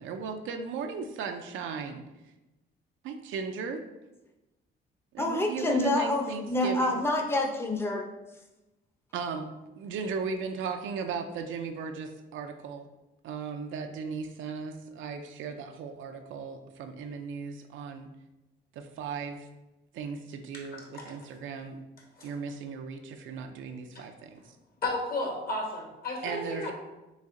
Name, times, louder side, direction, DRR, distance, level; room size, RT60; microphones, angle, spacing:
voice 1, 0.0-2.0 3.0-3.8 5.1-7.0 9.1-9.5 9.8-12.9 13.2-18.1 18.7-19.5 19.9-21.8 22.2-24.6 26.2-26.7, right 5 dB, 75° right, 5 dB, 0.5 m, -37 dB
voice 2, 5.2-8.0, left 1 dB, 10° left, 1 dB, 0.7 m, -27 dB
voice 3, 20.7-21.1 22.2-22.3 23.9-24.0 24.8-26.7, left 2 dB, 50° left, -1 dB, 1.5 m, -33 dB
4.1 x 3.3 x 3.7 m, 1.0 s
cardioid pair, 90°, 20 cm